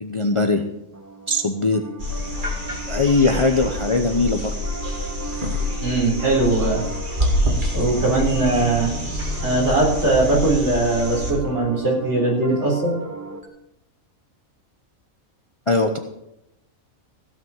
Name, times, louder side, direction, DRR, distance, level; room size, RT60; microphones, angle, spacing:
voice 1, 0.0-0.6 1.3-1.8 2.9-4.5 9.1-9.4 15.7-16.0, left 3 dB, 30° left, 5 dB, 0.7 m, -20 dB
Piano, 0.9-13.4, right 3 dB, 15° right, 1.1 m, -37 dB
sound 1, 2.0-11.3 13.4-13.5, left 1 dB, 35° right, 2.5 m, -27 dB
voice 2, 5.8-6.8 7.7-8.9 9.4-12.9, right 2 dB, 55° right, -2 dB, 4.4 m, -20 dB
16.0 x 6.2 x 7.1 m, 0.87 s
omnidirectional pair, 1.4 m